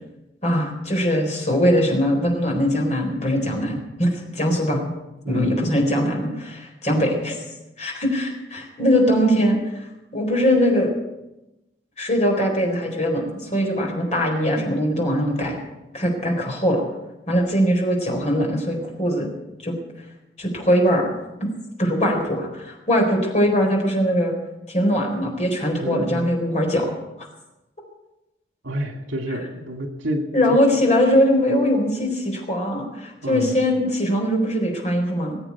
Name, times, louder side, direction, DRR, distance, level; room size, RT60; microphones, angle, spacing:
voice 1, 0.4-4.8 5.3-7.4 7.8-10.9 12.0-15.5 15.9-16.8 17.3-19.3 19.6-19.7 20.4-21.0 21.8-24.3 24.7-26.9 30.3-35.4, equal, 35° left, 0 dB, 4.2 m, -21 dB
voice 2, 5.2-5.6 25.8-26.2 28.6-30.2 33.2-33.5, equal, 85° right, 4 dB, 2.4 m, -28 dB
20.0 x 8.0 x 8.5 m, 0.97 s
head